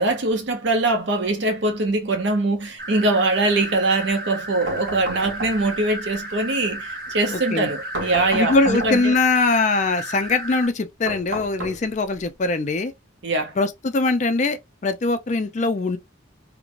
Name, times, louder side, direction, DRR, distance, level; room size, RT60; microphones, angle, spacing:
voice 1, 0.0-9.1 13.2-13.5, right 2 dB, 65° right, 0.7 m, -22 dB
sound 1, 2.8-10.7, right 1 dB, 45° right, 1.3 m, -34 dB
sound 2, 4.7-5.9 7.9-9.2 11.1-12.2, right 2 dB, 80° right, 1.1 m, -32 dB
voice 2, 7.3-7.7 8.3-12.9 13.6-16.0, left 3 dB, 40° left, 0.4 m, -22 dB
3.0 x 2.1 x 2.5 m
head